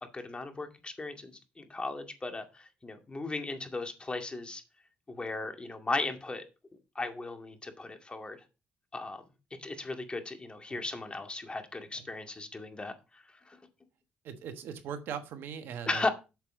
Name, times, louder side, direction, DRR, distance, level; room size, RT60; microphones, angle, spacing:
voice 1, 0.1-4.6 5.1-6.4 7.0-8.4 8.9-9.2 9.6-13.6 15.9-16.1, left 3 dB, 25° left, 2.1 m, -36 dB
voice 2, 14.2-16.1, right 8 dB, 70° right, 1.3 m, -40 dB
8.3 x 6.7 x 3.8 m
hypercardioid pair, 55°, 4 cm